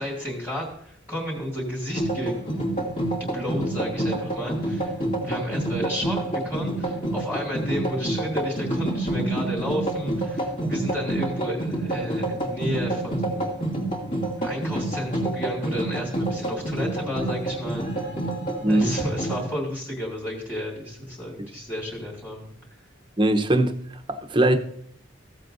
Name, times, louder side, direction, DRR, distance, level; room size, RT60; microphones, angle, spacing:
voice 1, 0.0-2.3 3.2-5.0 5.2-13.7 14.4-18.1 18.7-22.5, equal, 10° left, 2.4 m, -32 dB
sound 1, 1.9-19.5, right 1 dB, 45° left, 2.5 m, -28 dB
voice 2, 18.6-18.9 23.2-23.8 24.1-24.6, right 1 dB, 25° right, 0.8 m, -20 dB
15.0 x 7.5 x 2.6 m
head